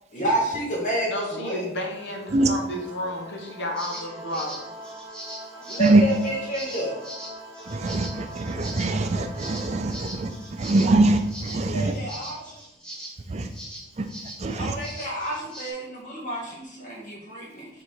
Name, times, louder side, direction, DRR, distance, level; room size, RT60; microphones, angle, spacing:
voice 1, 0.1-1.6 5.6-7.0 9.8-9.9 11.5-12.6 14.6-17.7, right 1 dB, 45° left, -3 dB, 2.2 m, -29 dB
voice 2, 1.1-4.7, left 1 dB, 70° left, 1 dB, 1.2 m, -32 dB
sound 1, 1.7-12.1, right 1 dB, 20° right, 1.9 m, -43 dB
sound 2, 3.8-15.7, right 1 dB, 5° left, 1.5 m, -41 dB
voice 3, 7.7-11.9 13.3-13.5 14.0-14.1 14.4-14.7, right 2 dB, 40° right, 7 dB, 0.5 m, -23 dB
6.2 x 3.8 x 4.7 m, 0.87 s
head